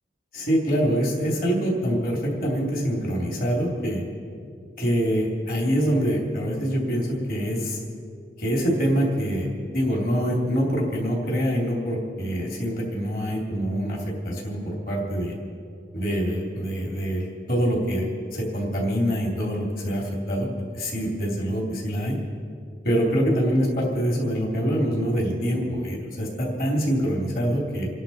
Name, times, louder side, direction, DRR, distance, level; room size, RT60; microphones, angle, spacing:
voice 1, 0.3-4.0 4.8-7.8 8.4-9.5 9.7-15.3 15.9-22.2 22.8-27.9, equal, 55° left, -2 dB, 3.3 m, -25 dB
28.5 x 11.0 x 4.4 m, 2.3 s
head